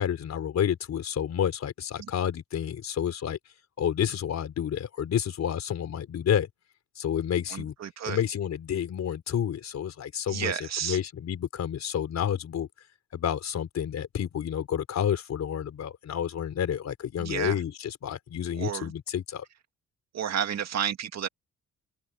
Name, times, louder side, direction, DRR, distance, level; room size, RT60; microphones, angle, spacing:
voice 1, 0.0-3.4 3.8-6.5 7.0-7.7 8.1-12.7 13.1-19.4, left 9 dB, 60° left, 4.1 m, -30 dB
voice 2, 7.5-8.2 10.3-11.0 17.2-17.6 18.5-18.9 20.1-21.3, right 9 dB, 60° right, 2.3 m, -31 dB
cardioid pair, 90°, 30 cm